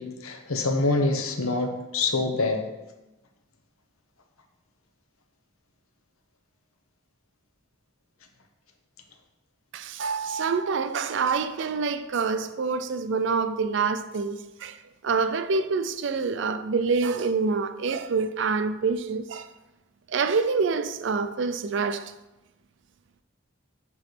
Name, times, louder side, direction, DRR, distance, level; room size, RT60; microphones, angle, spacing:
voice 1, 0.0-2.6, left 3 dB, 90° left, 0.9 m, -25 dB
voice 2, 9.7-14.8 15.0-19.5 20.1-22.1, right 4 dB, 60° right, 0.4 m, -26 dB
7.6 x 3.1 x 5.9 m
head